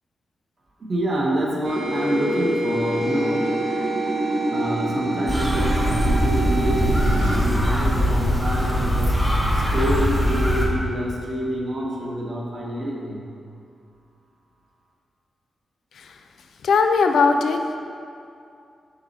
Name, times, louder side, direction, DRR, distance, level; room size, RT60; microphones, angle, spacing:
voice 1, 0.8-3.5 4.5-13.2, right 1 dB, 35° right, -3 dB, 0.7 m, -27 dB
sound 1, 1.6-7.4, right 1 dB, 65° right, 1.3 m, -26 dB
sound 2, 5.3-10.7, equal, 5° right, 1.0 m, -21 dB
voice 2, 16.6-17.8, left 4 dB, 75° left, 6 dB, 0.4 m, -19 dB
6.0 x 4.0 x 4.0 m, 2.5 s
wide cardioid pair, 170°, 0 cm